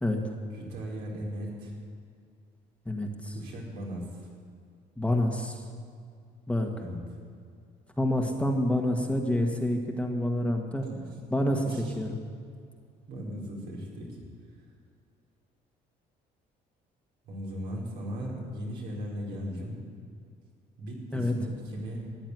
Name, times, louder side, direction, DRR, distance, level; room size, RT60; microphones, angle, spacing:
voice 1, 0.0-0.3 2.9-3.3 5.0-5.6 6.5-6.7 8.0-10.9 11.3-11.6 12.0-12.1 21.1-21.3, left 1 dB, 5° left, 2 dB, 1.6 m, -27 dB
voice 2, 0.5-1.7 3.3-4.2 6.8-7.0 10.7-11.1 11.6-11.9 13.1-14.2 17.2-19.8 20.8-22.1, equal, 80° right, -3 dB, 4.8 m, -37 dB
14.0 x 9.9 x 9.6 m, 2.3 s
cardioid pair, 110°, 17 cm